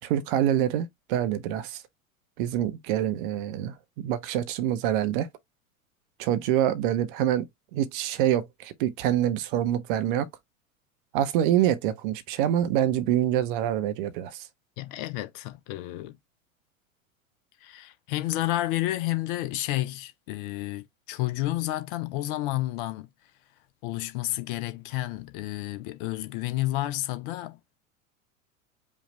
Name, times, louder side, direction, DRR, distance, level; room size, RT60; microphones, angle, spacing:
voice 1, 0.0-1.8 2.4-3.7 4.0-5.3 6.2-7.5 7.7-10.3 11.1-14.5, right 11 dB, 40° right, 0.6 m, -26 dB
voice 2, 14.8-16.2 17.6-23.1 23.8-27.7, left 16 dB, 40° left, 0.7 m, -31 dB
5.2 x 2.3 x 3.0 m
figure-of-eight pair, 85°, 42 cm